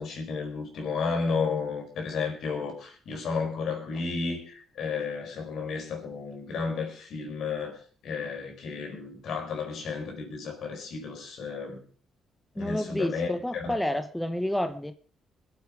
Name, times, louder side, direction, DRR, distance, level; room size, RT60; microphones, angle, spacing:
voice 1, 0.0-11.8 12.5-13.8, left 5 dB, 70° left, 4.9 m, -32 dB
voice 2, 12.6-14.9, left 1 dB, 5° left, 1.0 m, -29 dB
22.0 x 8.3 x 4.8 m
cardioid pair, 90°, 0 cm